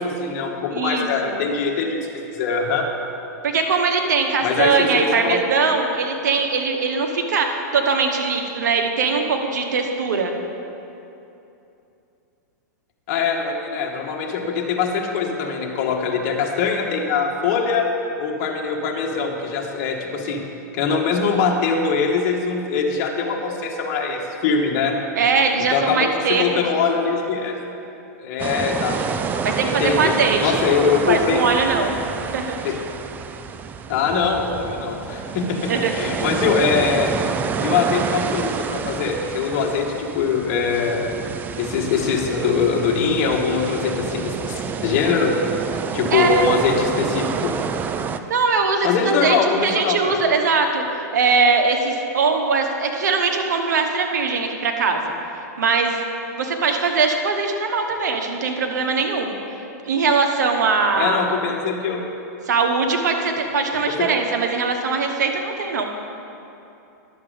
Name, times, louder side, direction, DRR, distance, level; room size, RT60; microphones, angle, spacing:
voice 1, 0.0-2.9 4.4-5.4 13.1-17.9 18.2-20.4 20.7-25.0 25.7-27.6 28.2-29.0 29.6-30.1 30.4-31.4 32.6-32.7 33.9-37.1 37.6-41.1 41.6-45.4 45.9-47.5 48.8-50.1 61.0-62.0 64.0-64.1, left 5 dB, 50° left, 0 dB, 1.5 m, -22 dB
voice 2, 0.7-1.4 3.4-10.3 25.1-26.6 29.4-30.6 31.1-31.9 32.3-32.6 35.7-36.3 46.1-46.5 48.3-55.1 55.6-56.0 56.4-59.4 59.8-61.3 62.5-65.9, right 4 dB, 80° right, 4 dB, 1.2 m, -21 dB
sound 1, 28.4-48.2, right 6 dB, 20° right, 0.4 m, -28 dB
11.5 x 7.3 x 5.0 m, 2.8 s
hypercardioid pair, 130°, 9 cm